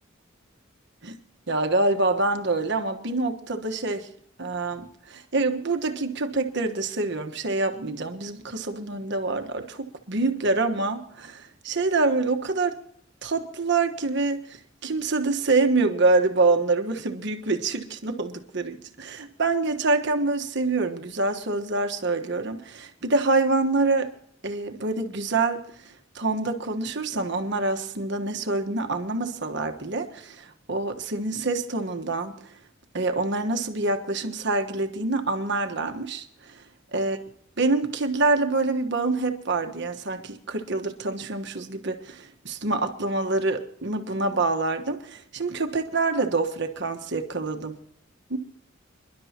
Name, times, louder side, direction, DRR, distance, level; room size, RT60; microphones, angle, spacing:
voice 1, 1.5-4.1 4.4-12.8 13.2-24.1 24.4-25.6 26.1-32.5 32.9-36.6 36.9-37.2 37.6-47.7 48.3-48.4, right 3 dB, 60° right, 5 dB, 1.3 m, -26 dB
26.5 x 11.5 x 2.9 m, 0.64 s
head